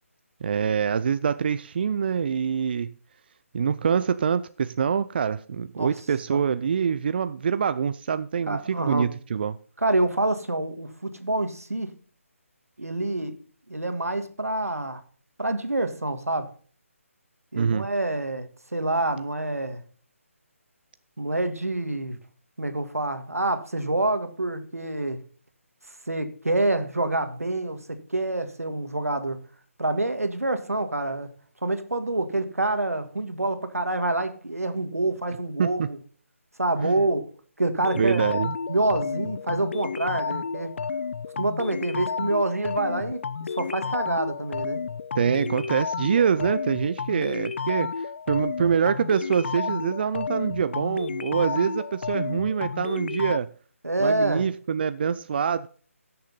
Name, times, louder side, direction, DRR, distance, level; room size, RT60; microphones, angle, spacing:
voice 1, 0.4-2.9 3.5-9.6 17.6-17.9 35.6-35.9 36.8-37.0 37.9-38.5 45.1-53.5 54.0-55.7, right 7 dB, 45° right, 0.4 m, -25 dB
voice 2, 8.5-9.1 9.8-11.9 12.8-13.4 13.7-15.0 15.4-16.5 17.5-19.8 21.2-22.2 22.6-25.2 26.1-29.4 29.8-31.3 31.6-36.0 36.6-37.2 37.6-38.2 38.7-40.8 41.4-44.8 53.8-54.5, right 2 dB, 85° right, 1.8 m, -27 dB
sound 1, 37.8-53.4, left 5 dB, 50° left, 0.4 m, -31 dB
16.0 x 6.7 x 4.1 m
figure-of-eight pair, 150°, 8 cm